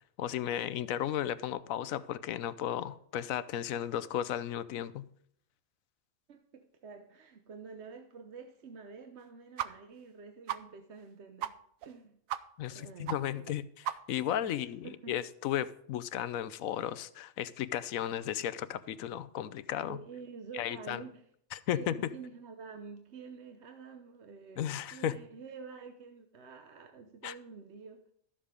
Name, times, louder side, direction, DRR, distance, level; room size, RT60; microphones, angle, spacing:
voice 1, 0.2-5.0 12.6-20.0 20.5-21.0 21.5-22.1 24.6-25.2 27.2-27.3, left 11 dB, 85° left, 16 dB, 1.1 m, -34 dB
voice 2, 6.3-11.6 11.8-12.2 12.7-13.5 14.4-15.2 19.9-21.3 21.7-28.0, right 5 dB, 60° right, 5 dB, 1.1 m, -48 dB
sound 1, 9.6-9.7 10.0-10.1 10.5-10.6 11.0-11.1 11.4-11.5 11.8-11.9 12.3-12.4 12.7-12.8 13.1-13.2 13.5-13.6 13.8-14.3, right 11 dB, 80° right, 1.0 m, -35 dB
12.5 x 7.5 x 5.1 m, 0.66 s
omnidirectional pair, 1.4 m